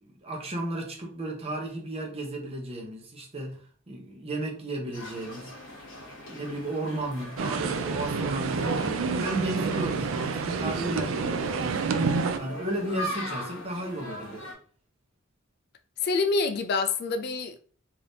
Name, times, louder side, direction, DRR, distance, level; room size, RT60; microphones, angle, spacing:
voice 1, 0.0-3.6 3.9-5.5 6.3-11.8 12.4-14.4, right 1 dB, 30° right, 0.8 m, -34 dB
sound 1, 4.9-14.5, equal, 70° left, 1.3 m, -41 dB
sound 2, 7.4-12.4, right 4 dB, 70° right, 0.4 m, -28 dB
voice 2, 16.0-17.6, left 4 dB, 50° left, 0.3 m, -26 dB
3.4 x 2.7 x 2.6 m
head